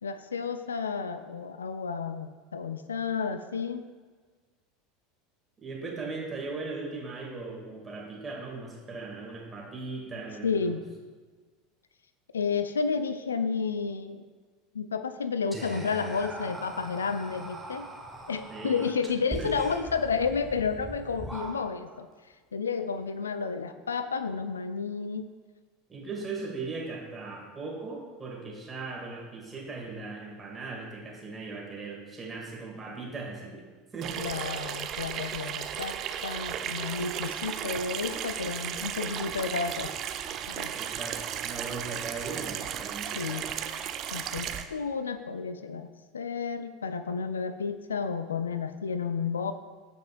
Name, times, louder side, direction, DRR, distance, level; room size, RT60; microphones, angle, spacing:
voice 1, 0.0-3.8 10.4-10.8 12.3-14.2 14.7-17.9 18.3-22.1 22.5-25.3 34.2-36.0 36.2-40.0 40.5-40.7 43.2-43.5 44.1-49.5, left 5 dB, 75° left, 11 dB, 0.3 m, -31 dB
voice 2, 5.6-10.7 18.5-18.8 19.4-19.5 25.9-34.2 40.7-43.4, right 3 dB, 20° right, -3 dB, 2.4 m, -38 dB
Whispering, 15.5-22.0, right 1 dB, ahead, 1.3 m, -41 dB
Water tap faucet / Sink (filling or washing), 34.0-44.6, right 9 dB, 40° right, 0.5 m, -35 dB
14.5 x 5.2 x 2.5 m, 1.5 s
figure-of-eight pair, 75°, 0 cm